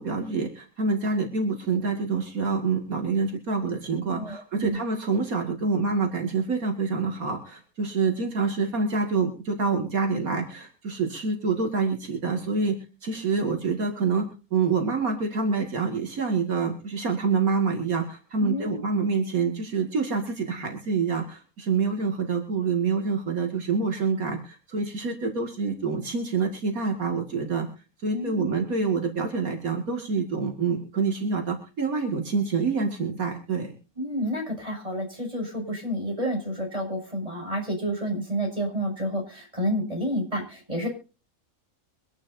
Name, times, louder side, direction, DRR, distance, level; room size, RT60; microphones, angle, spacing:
voice 1, 0.0-27.7 28.0-33.7, right 4 dB, 80° right, 2 dB, 2.7 m, -27 dB
voice 2, 4.1-4.8 18.4-18.8 28.1-28.5 34.0-40.9, equal, 25° right, 2 dB, 6.8 m, -30 dB
24.5 x 11.0 x 2.7 m, 0.33 s
omnidirectional pair, 1.5 m